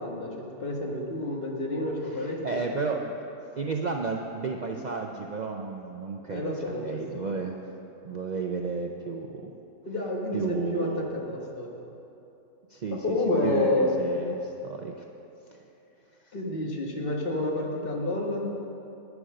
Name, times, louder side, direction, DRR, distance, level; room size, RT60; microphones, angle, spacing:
voice 1, 0.0-2.8 6.3-7.4 9.8-11.7 12.9-13.9 16.3-18.5, left 2 dB, 40° left, -1 dB, 1.6 m, -29 dB
voice 2, 2.0-3.1 3.6-7.6 8.0-9.5 10.3-11.1 12.7-13.2 13.4-14.9 15.5-15.6, right 4 dB, 80° right, 2 dB, 0.4 m, -32 dB
10.0 x 9.6 x 6.4 m, 2.9 s
omnidirectional pair, 1.6 m